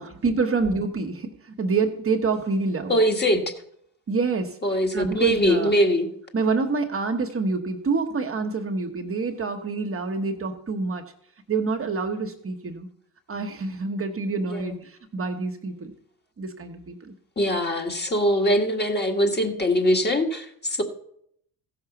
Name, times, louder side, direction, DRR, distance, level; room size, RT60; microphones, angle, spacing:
voice 1, 0.0-3.0 4.1-4.6 4.9-5.7 6.3-11.1 11.5-12.9 13.3-15.9 16.4-17.1, right 4 dB, 30° right, 4 dB, 1.1 m, -27 dB
voice 2, 2.9-3.5 4.6-6.1 14.4-14.8 17.4-20.8, equal, 25° left, 3 dB, 1.8 m, -22 dB
15.0 x 5.9 x 5.9 m, 0.70 s
supercardioid pair, 95°, 43 cm